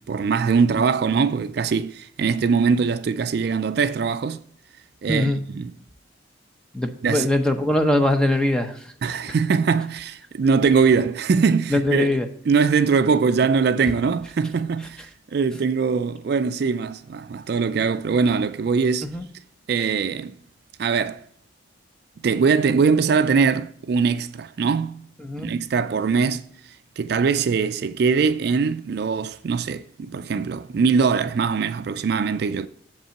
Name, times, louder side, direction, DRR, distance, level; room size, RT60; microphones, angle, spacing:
voice 1, 0.0-4.4 5.0-5.7 7.0-7.3 9.0-12.2 12.5-15.0 15.3-19.1 19.7-20.4 20.8-21.2 22.2-25.0 25.4-26.4 27.0-32.7, right 5 dB, 55° right, 0.3 m, -22 dB
voice 2, 5.1-5.4 6.7-9.4 11.7-12.3 14.8-14.9 19.0-19.3 25.2-25.5, left 1 dB, 5° left, 0.7 m, -22 dB
7.3 x 5.4 x 5.7 m
head